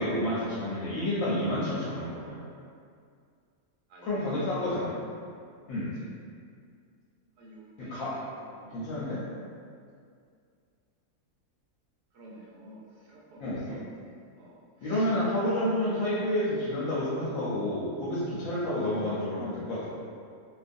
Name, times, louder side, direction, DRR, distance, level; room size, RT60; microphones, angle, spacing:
voice 1, 0.0-2.4 4.0-4.9 5.7-5.9 7.8-8.1 8.7-9.2 13.4-13.8 14.8-19.9, left 1 dB, 70° left, -10 dB, 0.9 m, -29 dB
voice 2, 3.9-4.7 5.9-6.1 7.4-8.9 12.1-15.9 17.1-17.5, right 1 dB, 90° right, -4 dB, 1.2 m, -50 dB
2.6 x 2.3 x 2.5 m, 2.3 s
omnidirectional pair, 1.7 m